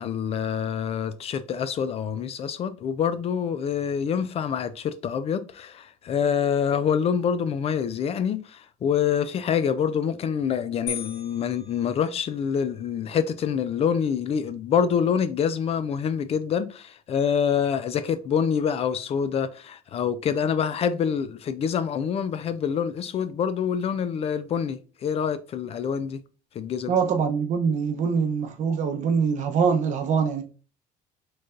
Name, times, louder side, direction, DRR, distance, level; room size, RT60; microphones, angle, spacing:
voice 1, 0.0-26.2 26.5-26.9, left 7 dB, 40° left, 0.4 m, -26 dB
sound 1, 10.9-12.6, left 6 dB, 80° left, 2.0 m, -38 dB
voice 2, 26.9-30.4, right 6 dB, 50° right, 0.7 m, -24 dB
4.4 x 3.1 x 2.5 m
cardioid pair, 120°, 16 cm